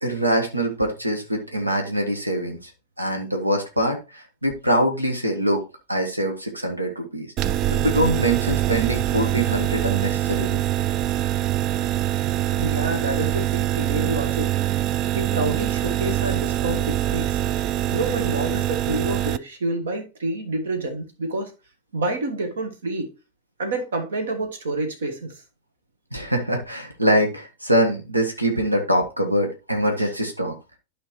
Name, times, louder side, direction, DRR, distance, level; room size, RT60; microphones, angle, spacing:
voice 1, 0.0-2.6 3.0-5.6 5.9-10.6 26.1-30.6, right 1 dB, 85° right, 1.3 m, -24 dB
sound 1, 7.4-19.4, right 13 dB, 35° right, 0.3 m, -24 dB
voice 2, 12.5-14.5 15.1-17.4 17.9-21.5 21.9-23.1 23.6-25.4 30.0-30.1, right 2 dB, 65° right, 1.4 m, -28 dB
12.0 x 5.1 x 3.0 m
figure-of-eight pair, 90°, 0 cm